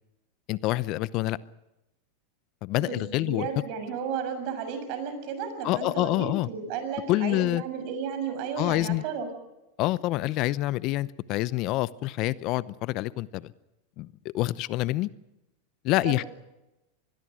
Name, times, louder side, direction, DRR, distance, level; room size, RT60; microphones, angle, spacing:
voice 1, 0.5-1.4 2.6-3.5 5.6-6.5 7.1-7.6 8.6-9.0 9.8-13.5 14.0-15.1 15.8-16.2, left 17 dB, 50° left, 19 dB, 0.7 m, -27 dB
voice 2, 2.8-9.3 16.0-16.3, right 6 dB, 55° right, 8 dB, 6.5 m, -33 dB
25.5 x 21.0 x 6.3 m, 0.96 s
hypercardioid pair, 100°, 0 cm